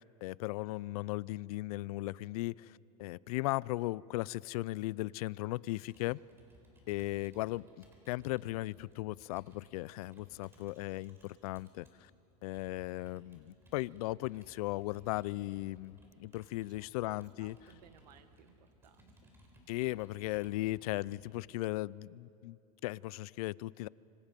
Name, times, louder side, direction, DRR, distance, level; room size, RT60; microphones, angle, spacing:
voice 1, 0.2-2.7 3.0-6.2 6.9-7.6 8.1-12.1 12.4-17.5 19.7-22.6 22.8-23.9, left 19 dB, 65° left, 0.4 m, -37 dB
Computer keyboard, 5.8-11.9 12.5-21.3, left 1 dB, 10° right, 4.0 m, -62 dB
voice 2, 16.7-19.3, right 8 dB, 85° right, 1.3 m, -61 dB
26.5 x 25.0 x 5.3 m
supercardioid pair, 140°, 20 cm